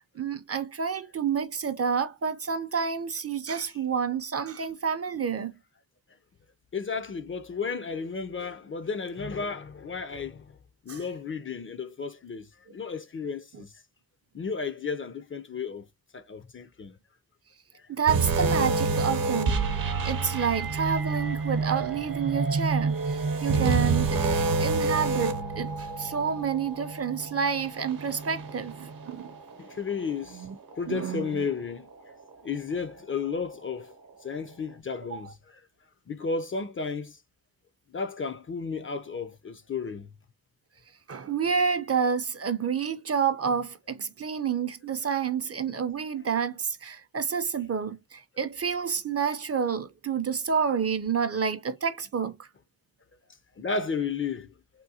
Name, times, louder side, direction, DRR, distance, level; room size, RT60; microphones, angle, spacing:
voice 1, 0.0-5.5 10.9-11.0 17.9-29.3 30.4-30.5 30.9-31.3 35.1-35.2 41.1-52.5, right 6 dB, 40° right, 0.4 m, -29 dB
voice 2, 6.7-10.5 10.9-13.7 14.3-15.9 16.1-17.0 29.6-32.1 32.4-33.9 34.2-35.6 36.1-37.2 37.9-40.1 53.6-54.5, left 5 dB, 35° left, 0.4 m, -33 dB
sound 1, 18.1-29.5 29.9-30.1 30.7-30.8, right 4 dB, 65° right, 0.8 m, -28 dB
3.7 x 2.2 x 2.7 m
wide cardioid pair, 80°, 38 cm